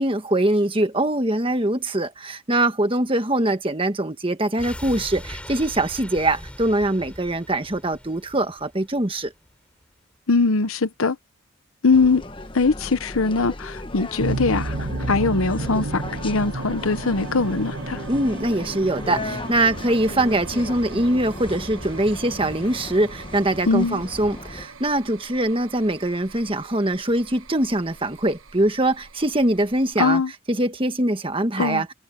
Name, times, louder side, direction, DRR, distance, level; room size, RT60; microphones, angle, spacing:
voice 1, 0.0-9.3 18.1-30.2 30.5-31.9, right 1 dB, 25° right, 1.5 m, -23 dB
sound 1, 4.6-9.5 9.8-9.9, equal, 5° left, 4.0 m, -40 dB
voice 2, 10.3-11.2 11.8-12.2 12.5-18.0 23.6-24.0 30.0-30.3 31.6-31.8, left 4 dB, 80° left, 0.9 m, -21 dB
sound 2, 11.9-24.7, left 1 dB, 25° left, 1.2 m, -36 dB
sound 3, 14.2-29.9, right 2 dB, 70° right, 1.3 m, -34 dB
head